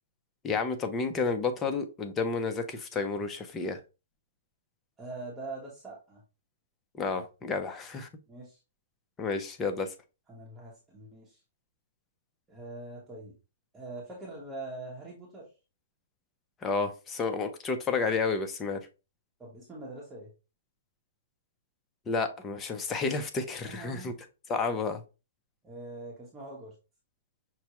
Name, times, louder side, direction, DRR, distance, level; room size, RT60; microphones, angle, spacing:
voice 1, 0.4-3.8 6.9-8.1 9.2-9.9 16.6-18.9 22.1-24.1 24.5-25.0, left 4 dB, 15° left, 0.5 m, -31 dB
voice 2, 5.0-6.2 7.1-7.6 8.3-8.6 10.3-11.4 12.5-13.3 13.7-15.5 19.4-20.3 23.6-24.2 25.6-26.7, right 2 dB, 10° right, 0.9 m, -43 dB
5.8 x 2.1 x 2.9 m
hypercardioid pair, 155°, 0 cm